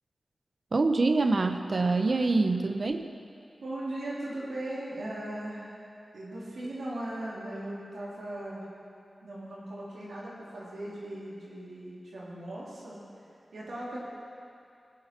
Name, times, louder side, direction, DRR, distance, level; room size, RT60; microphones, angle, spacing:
voice 1, 0.7-3.1, right 3 dB, 60° right, 7 dB, 0.7 m, -25 dB
voice 2, 3.6-5.8 6.1-8.6 9.2-13.0 13.5-14.0, right 1 dB, 85° right, -6 dB, 3.1 m, -38 dB
16.0 x 7.8 x 6.0 m, 2.5 s
cardioid pair, 45°, 0 cm